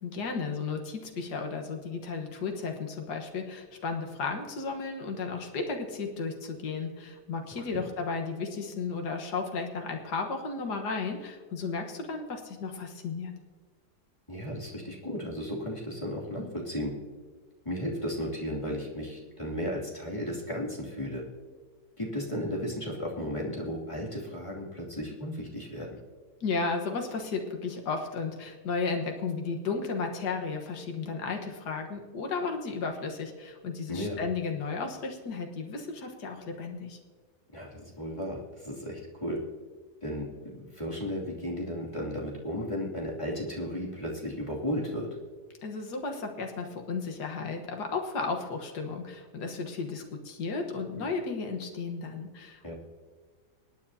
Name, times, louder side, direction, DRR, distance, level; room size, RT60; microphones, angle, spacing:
voice 1, 0.0-13.3 26.4-37.0 45.6-52.7, left 4 dB, 75° left, 3 dB, 1.9 m, -34 dB
voice 2, 14.3-16.9 17.6-21.2 22.0-26.0 33.9-34.2 37.5-39.4 40.0-40.3 40.6-45.1 50.9-51.1 52.6-52.7, equal, 15° left, -4 dB, 2.7 m, -34 dB
26.0 x 9.4 x 2.8 m, 1.5 s
omnidirectional pair, 1.8 m